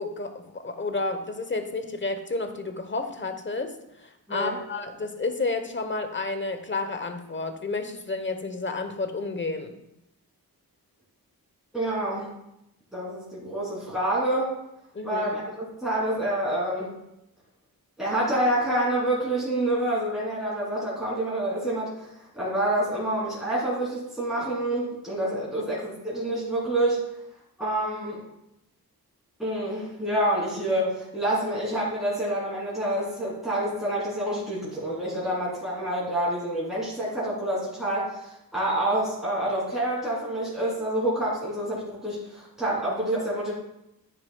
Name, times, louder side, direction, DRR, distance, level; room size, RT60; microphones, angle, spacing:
voice 1, 0.0-9.7 14.9-15.3 25.2-25.7, left 3 dB, 30° left, 7 dB, 1.0 m, -31 dB
voice 2, 11.7-12.3 12.9-14.5 15.0-17.0 18.0-22.1 22.3-27.0 27.6-28.2 29.4-43.5, right 1 dB, ahead, -8 dB, 3.1 m, -27 dB
10.0 x 9.6 x 2.3 m, 0.85 s
wide cardioid pair, 85°, 37 cm